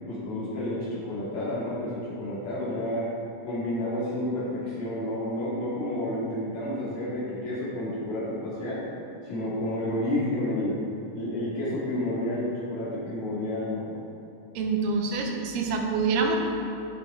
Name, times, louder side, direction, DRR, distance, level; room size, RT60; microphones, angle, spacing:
voice 1, 0.1-3.1 3.4-8.8 9.2-10.8 11.1-13.9, left 1 dB, 75° left, -8 dB, 3.8 m, -30 dB
voice 2, 14.6-16.4, right 4 dB, 85° right, 2 dB, 2.4 m, -26 dB
9.8 x 7.0 x 3.7 m, 2.7 s
omnidirectional pair, 3.9 m